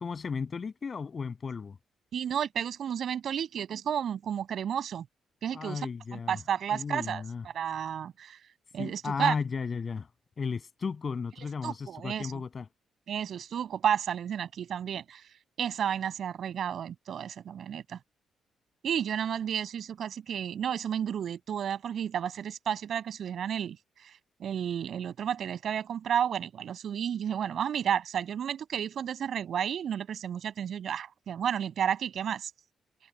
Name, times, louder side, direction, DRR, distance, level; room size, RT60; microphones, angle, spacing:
voice 1, 0.0-1.8 5.5-6.4 6.7-7.5 8.8-10.1 10.4-12.7, left 5 dB, 35° left, 7.1 m, -34 dB
voice 2, 2.1-5.0 5.4-8.4 8.7-9.3 11.6-12.4 13.1-15.2 15.6-18.0 18.8-23.8 24.4-32.5, right 9 dB, 60° right, 6.6 m, -32 dB
cardioid pair, 135°, 0 cm